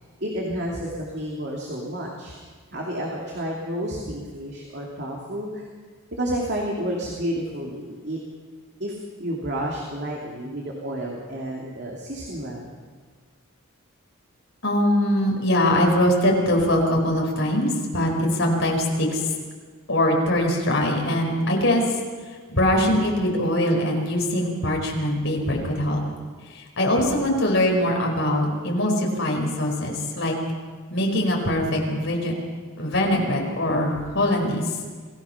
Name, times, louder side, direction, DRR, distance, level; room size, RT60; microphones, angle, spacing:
voice 1, 0.2-2.4 2.7-5.7 6.2-8.2 8.8-12.7, equal, 50° right, -2 dB, 2.7 m, -30 dB
voice 2, 14.6-19.3 19.9-21.8 22.5-26.0 26.5-30.3 30.9-32.3 32.8-34.6, left 1 dB, 60° left, 0 dB, 4.8 m, -22 dB
26.5 x 17.0 x 5.9 m, 1.5 s
head